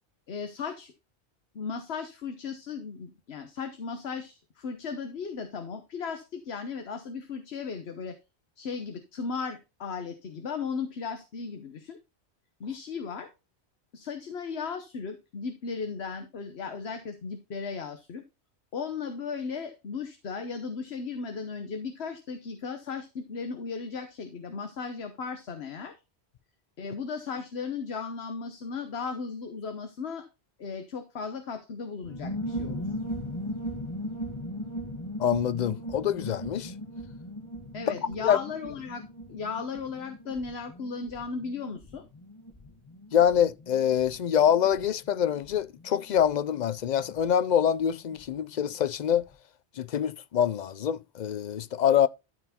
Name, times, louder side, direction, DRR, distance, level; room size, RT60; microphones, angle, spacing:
voice 1, 0.3-0.9 1.5-8.2 8.6-12.0 12.6-13.3 13.9-18.2 18.7-25.9 26.8-30.2 30.6-32.9 37.7-39.0 39.3-42.0, left 5 dB, 70° left, 1.3 m, -36 dB
sound 1, 32.0-48.3 48.6-48.7 48.9-49.3, equal, 25° left, 1.7 m, -39 dB
voice 2, 35.2-36.7 38.2-38.4 43.1-49.2 49.8-52.1, left 9 dB, 55° left, 0.5 m, -25 dB
13.0 x 4.6 x 4.1 m
omnidirectional pair, 1.1 m